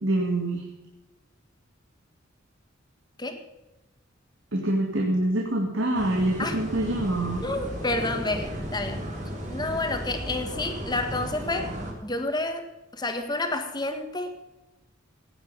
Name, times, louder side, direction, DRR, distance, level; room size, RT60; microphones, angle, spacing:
voice 1, 0.0-0.6 4.5-7.4, right 1 dB, 70° right, 1 dB, 2.2 m, -25 dB
sound 1, 5.9-11.9, equal, 40° right, 3.5 m, -35 dB
voice 2, 7.4-9.1 9.5-11.7 12.0-12.6 12.9-14.5, left 2 dB, 20° left, 6 dB, 1.7 m, -29 dB
16.5 x 9.6 x 5.6 m, 1.0 s
head